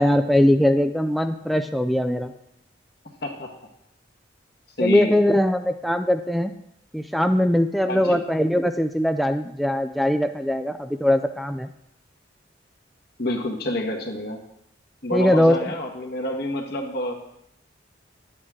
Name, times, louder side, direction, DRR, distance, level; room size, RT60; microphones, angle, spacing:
voice 1, 0.0-2.3 4.8-6.5 6.9-11.7 15.1-15.6, left 1 dB, ahead, 7 dB, 0.4 m, -21 dB
voice 2, 4.8-5.1 7.9-8.2 13.2-14.4 15.0-17.2, left 1 dB, 55° left, 1 dB, 1.5 m, -28 dB
10.5 x 8.6 x 3.7 m, 0.78 s
head